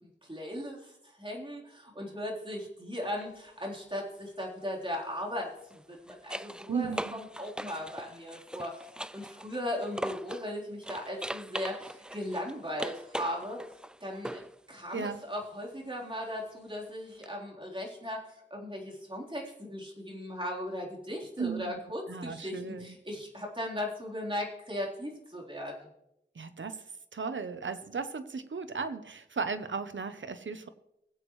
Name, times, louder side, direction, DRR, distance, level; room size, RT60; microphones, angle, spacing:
voice 1, 0.0-8.9 9.1-13.6 14.0-14.4 14.7-18.2 18.5-25.9, left 1 dB, 25° right, -3 dB, 3.8 m, -38 dB
sound 1, 3.0-3.3 5.6-10.5 10.8-14.6 17.2-17.3, right 1 dB, 5° right, 0.3 m, -40 dB
voice 2, 6.7-7.2 14.9-15.2 21.4-21.8 22.1-22.9 26.4-26.8 27.1-30.7, right 5 dB, 90° right, 10 dB, 0.8 m, -35 dB
20.5 x 8.1 x 3.2 m, 0.82 s
wide cardioid pair, 55°, 19 cm